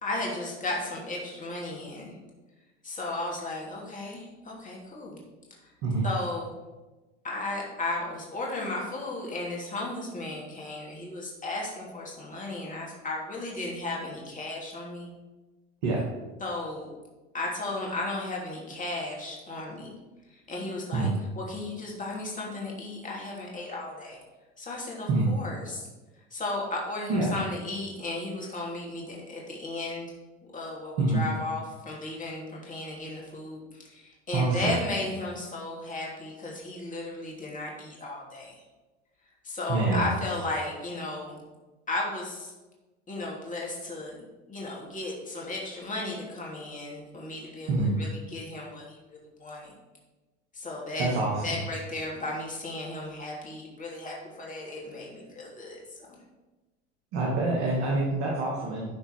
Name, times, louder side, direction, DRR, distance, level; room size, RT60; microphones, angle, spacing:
voice 1, 0.0-2.1 2.8-5.2 6.0-6.5 7.2-15.1 16.4-16.9 17.3-19.9 20.5-21.1 21.3-24.2 24.6-25.9 26.3-30.1 30.5-38.6 39.4-41.4 41.9-42.5 43.1-49.7 50.5-51.1 51.4-55.8, left 2 dB, 20° left, -3 dB, 2.8 m, -35 dB
voice 2, 34.3-34.8 39.7-40.1 47.7-47.9 51.0-51.5 57.1-58.9, right 3 dB, 65° right, -4 dB, 2.2 m, -26 dB
12.0 x 4.4 x 4.6 m, 1.2 s
hypercardioid pair, 80°, 36 cm